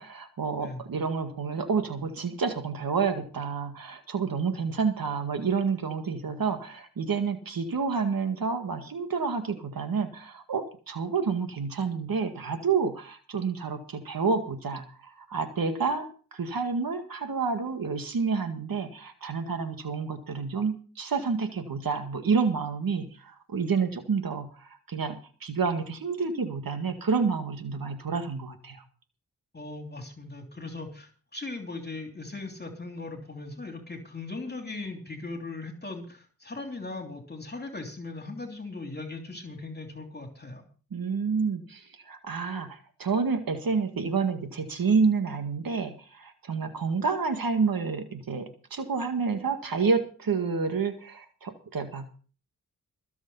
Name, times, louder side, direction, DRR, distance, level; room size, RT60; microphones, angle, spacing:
voice 1, 0.0-28.8 40.9-52.1, right 5 dB, 70° right, 7 dB, 2.0 m, -29 dB
voice 2, 29.5-40.6, left 3 dB, 25° left, 3 dB, 3.2 m, -39 dB
21.0 x 7.1 x 5.6 m, 0.39 s
cardioid pair, 50°, 36 cm